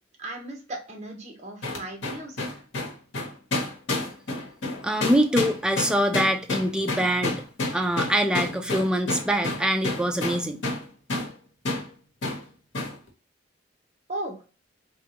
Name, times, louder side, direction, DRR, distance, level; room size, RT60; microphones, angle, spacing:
voice 1, 0.2-2.6 14.1-14.4, right 1 dB, 40° right, 0.9 m, -37 dB
sound 1, 1.6-10.8 11.1-11.3 11.6-11.9 12.2-12.4 12.7-13.0, left 2 dB, 80° left, 0.9 m, -29 dB
voice 2, 4.8-7.4 7.7-10.6, equal, 5° right, 0.3 m, -24 dB
3.4 x 2.3 x 2.8 m
head